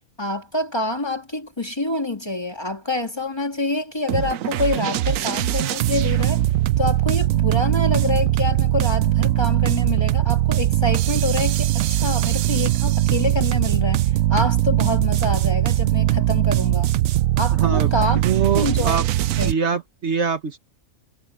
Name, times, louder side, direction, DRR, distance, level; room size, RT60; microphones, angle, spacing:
voice 1, 0.2-6.4 6.8-16.9 17.4-18.2 18.6-19.1 19.4-19.5, left 2 dB, 20° left, 1.9 m, -26 dB
sound 1, 4.1-19.5, right 14 dB, 85° right, 1.0 m, -20 dB
voice 2, 17.5-17.9 18.1-19.0 19.4-20.6, right 6 dB, 60° right, 1.6 m, -23 dB
omnidirectional pair, 1.4 m